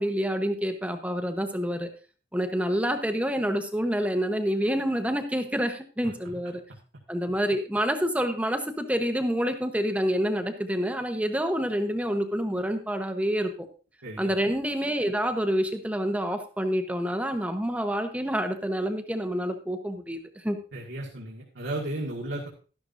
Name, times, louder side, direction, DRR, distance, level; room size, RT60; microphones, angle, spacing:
voice 1, 0.0-1.9 2.3-6.6 7.1-13.7 14.2-20.6, equal, 10° right, 6 dB, 0.9 m, -27 dB
voice 2, 20.7-22.5, right 1 dB, 85° right, -2 dB, 1.8 m, -34 dB
12.5 x 11.5 x 2.6 m, 0.36 s
head